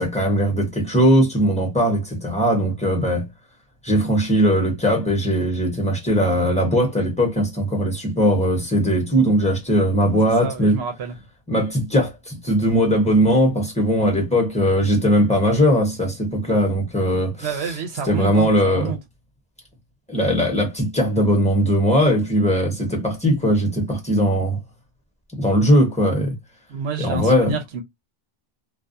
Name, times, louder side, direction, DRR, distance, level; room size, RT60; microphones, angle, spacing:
voice 1, 0.0-3.3 3.8-10.8 11.5-17.5 18.1-18.9 20.1-24.6 25.3-26.3 27.0-27.6, equal, 5° left, 1.0 m, -19 dB
voice 2, 10.4-11.1 17.4-19.0 26.7-27.8, right 5 dB, 85° right, 0.9 m, -28 dB
2.3 x 2.3 x 2.6 m
omnidirectional pair, 1.0 m